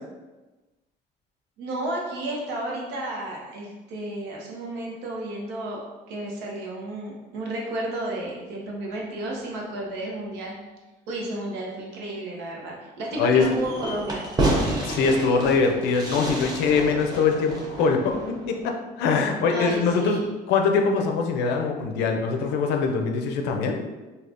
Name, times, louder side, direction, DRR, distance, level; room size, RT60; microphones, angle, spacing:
voice 1, 1.6-5.8 6.1-10.6 11.1-14.3 19.5-20.3, right 1 dB, 90° right, -2 dB, 0.7 m, -32 dB
voice 2, 13.2-13.5 14.8-23.8, left 5 dB, 85° left, 3 dB, 0.5 m, -23 dB
Fireworks, 13.4-18.6, right 1 dB, 25° right, 0.6 m, -29 dB
3.3 x 2.3 x 2.5 m, 1.2 s
cardioid pair, 110°, 17 cm